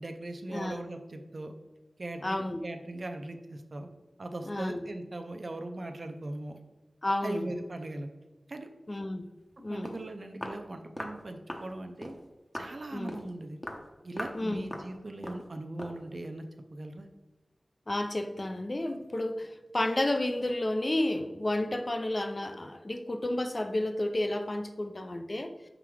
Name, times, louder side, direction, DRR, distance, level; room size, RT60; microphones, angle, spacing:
voice 1, 0.0-1.5 2.0-3.9 4.2-6.6 7.2-8.1 8.5-8.7 9.7-12.2 12.5-13.6 14.0-16.4 16.7-17.1, right 2 dB, 50° right, 6 dB, 0.6 m, -39 dB
voice 2, 2.2-2.6 4.4-4.9 7.0-7.5 8.9-9.3 9.6-9.9 12.9-13.2 14.3-14.6 17.9-25.7, left 1 dB, 35° left, 7 dB, 0.5 m, -31 dB
Walk footsteps, 9.5-9.6 9.8-10.0 10.4-10.6 11.0-11.2 11.5-11.7 12.0-12.2 12.5-12.7 13.1-13.3 13.6-13.8 14.2-14.4 14.7-14.9 15.2-15.4 15.8-16.0, equal, 20° left, 0.8 m, -39 dB
5.7 x 3.7 x 4.7 m, 1.1 s
wide cardioid pair, 90°, 0 cm